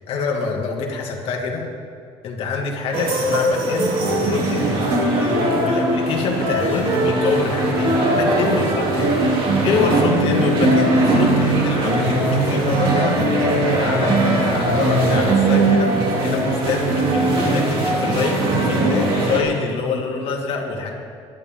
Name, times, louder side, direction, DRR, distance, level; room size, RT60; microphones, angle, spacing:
voice 1, 0.1-1.7 2.2-4.9 5.2-13.2 13.8-20.9, left 4 dB, 60° left, 0 dB, 2.3 m, -26 dB
sound 1, 2.9-19.4, right 2 dB, 55° right, 3.2 m, -19 dB
22.0 x 11.0 x 3.8 m, 2.2 s
cardioid pair, 145°, 11 cm